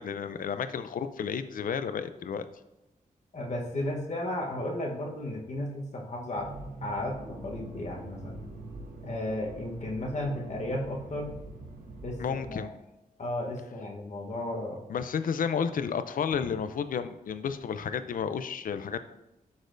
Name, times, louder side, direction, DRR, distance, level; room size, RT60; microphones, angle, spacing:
voice 1, 0.0-2.4 12.2-12.7 14.9-19.0, left 7 dB, 70° left, 11 dB, 0.5 m, -32 dB
voice 2, 3.3-6.5 6.8-8.4 9.0-11.3 12.0-12.7 13.2-14.8, left 1 dB, 55° left, -1 dB, 1.1 m, -34 dB
Accelerating revving vroom, 6.3-12.6, right 2 dB, 85° right, 1.0 m, -44 dB
11.5 x 4.1 x 2.6 m, 0.97 s
cardioid pair, 85°, 15 cm